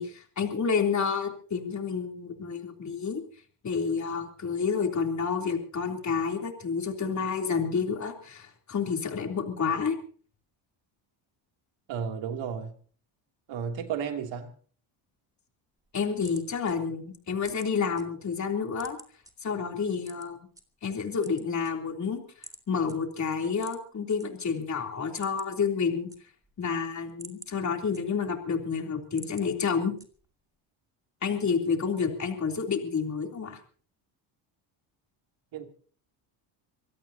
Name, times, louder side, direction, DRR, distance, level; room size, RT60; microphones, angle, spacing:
voice 1, 0.0-3.2 3.6-9.9 15.9-19.0 19.4-20.4 20.8-22.2 22.7-26.1 26.6-29.9 31.2-33.6, left 5 dB, 35° left, 3.4 m, -29 dB
voice 2, 11.9-12.7 13.5-14.5 35.5-35.7, right 7 dB, 70° right, 3.0 m, -33 dB
sound 1, 15.8-18.0 18.4-19.3 20.0-20.6 21.1-22.1 22.4-22.6 22.9-23.0 23.5-24.3 24.6-24.7 25.0-25.6 25.9-26.6 27.0-28.4 28.8-29.5 30.0-30.4, right 1 dB, 5° right, 2.4 m, -49 dB
25.0 x 17.0 x 2.9 m
cardioid pair, 105°, 47 cm